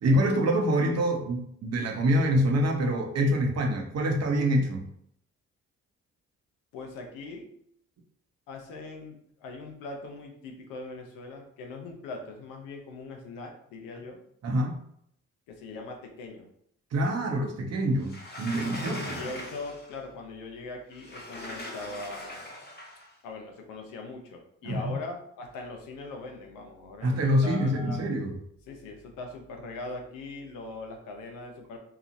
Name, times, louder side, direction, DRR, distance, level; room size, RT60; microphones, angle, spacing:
voice 1, 0.0-4.9 14.4-14.8 16.9-19.2 24.6-24.9 27.0-28.4, equal, 50° right, 3 dB, 0.7 m, -26 dB
voice 2, 6.7-7.5 8.5-14.2 15.5-16.5 18.8-22.5 23.2-28.0 28.7-31.8, left 3 dB, 85° left, 2 dB, 0.7 m, -41 dB
Sliding door, 18.0-20.0 20.9-23.1, left 1 dB, 30° left, 0.9 m, -40 dB
2.9 x 2.4 x 2.5 m, 0.69 s
supercardioid pair, 55°, 33 cm